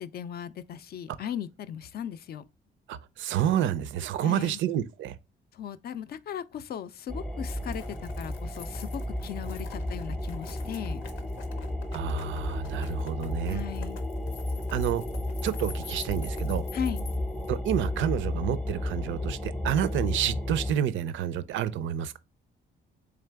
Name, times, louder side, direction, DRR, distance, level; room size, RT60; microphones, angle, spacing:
voice 1, 0.0-2.4 4.2-4.6 5.5-11.0 13.5-14.0 16.7-17.0, left 9 dB, 50° left, 0.4 m, -37 dB
voice 2, 2.9-5.2 11.9-13.6 14.7-15.0 15.4-16.7 17.5-22.2, right 10 dB, 75° right, 0.4 m, -29 dB
sound 1, 7.1-20.7, left 1 dB, 5° left, 0.7 m, -33 dB
sound 2, 7.4-18.0, left 6 dB, 85° left, 0.7 m, -48 dB
3.8 x 3.3 x 3.3 m
cardioid pair, 90°, 20 cm